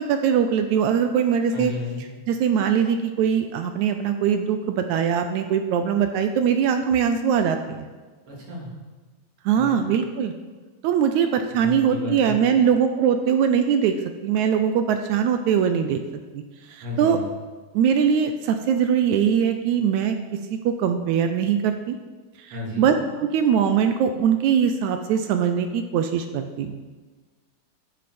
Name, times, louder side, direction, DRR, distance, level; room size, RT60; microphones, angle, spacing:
voice 1, 0.0-1.7 2.3-7.9 9.4-10.3 10.8-13.9 14.2-16.4 16.7-17.2 17.7-20.2 20.6-22.0 22.5-26.8, right 7 dB, 80° right, 7 dB, 1.7 m, -22 dB
voice 2, 1.5-2.0 8.3-8.7 9.5-9.8 11.6-12.3 16.8-17.2 22.5-22.9, left 2 dB, 50° right, -5 dB, 4.1 m, -32 dB
12.5 x 9.5 x 4.3 m, 1.3 s
omnidirectional pair, 3.9 m